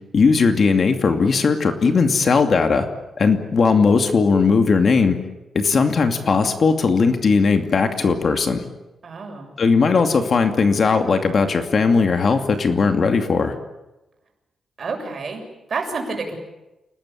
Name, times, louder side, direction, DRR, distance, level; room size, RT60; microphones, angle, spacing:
voice 1, 0.1-2.9 3.2-5.2 5.5-8.6 9.6-13.5, left 4 dB, 50° left, 6 dB, 2.5 m, -18 dB
voice 2, 9.0-9.5 14.8-15.4 15.7-16.4, right 4 dB, 45° right, 3 dB, 7.0 m, -29 dB
29.5 x 19.5 x 8.7 m, 1.0 s
wide cardioid pair, 125°, 0 cm